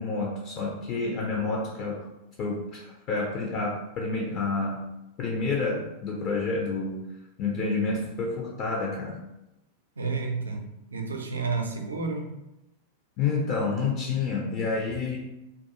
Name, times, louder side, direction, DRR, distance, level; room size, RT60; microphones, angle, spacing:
voice 1, 0.0-2.0 2.4-4.9 5.2-7.1 7.4-9.2 13.2-15.2, left 4 dB, 40° left, -1 dB, 0.4 m, -29 dB
voice 2, 10.0-10.6 10.9-12.3, right 4 dB, 70° right, 2 dB, 0.4 m, -30 dB
2.3 x 2.2 x 2.7 m, 0.90 s
figure-of-eight pair, 90°, 0 cm